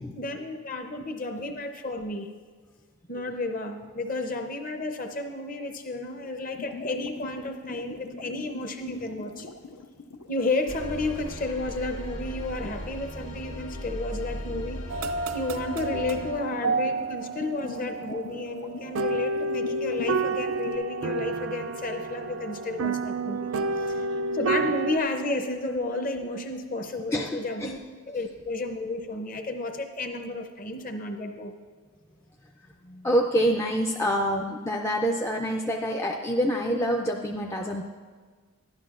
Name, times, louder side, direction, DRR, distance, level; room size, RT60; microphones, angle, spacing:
voice 1, 0.1-2.3 3.1-9.5 10.3-23.5 23.9-24.0 24.3-27.8 28.1-31.5, left 2 dB, 40° left, 5 dB, 0.7 m, -32 dB
sound 1, 6.4-10.5 11.1-11.5 15.6-20.8, left 3 dB, 90° left, 0.6 m, -41 dB
sound 2, 10.7-16.3, equal, 70° left, 1.7 m, -37 dB
sound 3, 14.9-25.0, right 3 dB, 70° right, 0.3 m, -30 dB
voice 2, 27.1-27.7 32.8-37.8, equal, 10° left, 0 dB, 0.3 m, -27 dB
11.5 x 11.5 x 2.4 m, 1.5 s
head